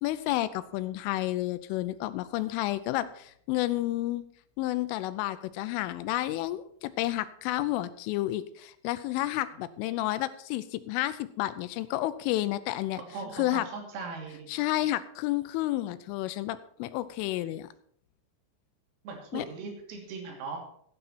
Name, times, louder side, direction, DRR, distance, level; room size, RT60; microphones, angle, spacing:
voice 1, 0.0-4.3 4.6-13.0 13.3-13.7 14.5-17.7 19.3-19.5, left 15 dB, 80° left, 14 dB, 3.0 m, -31 dB
voice 2, 13.1-14.5 19.1-20.6, right 4 dB, 90° right, 1 dB, 5.4 m, -39 dB
15.5 x 9.8 x 4.3 m, 0.66 s
omnidirectional pair, 6.0 m